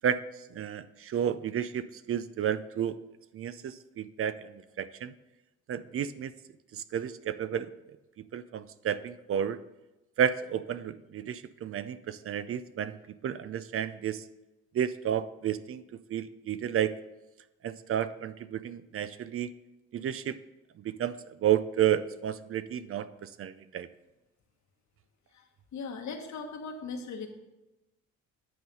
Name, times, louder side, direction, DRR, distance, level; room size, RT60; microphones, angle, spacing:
voice 1, 0.5-3.0 3.3-5.1 5.7-6.3 6.7-7.7 8.3-9.6 10.2-13.0 13.2-14.2 14.7-15.8 16.1-16.9 17.6-19.5 19.9-20.4 20.8-23.9, right 9 dB, 50° right, 14 dB, 0.4 m, -31 dB
voice 2, 25.7-27.3, left 4 dB, 65° left, 3 dB, 1.3 m, -38 dB
9.3 x 4.1 x 5.2 m, 1.0 s
cardioid pair, 90°, 30 cm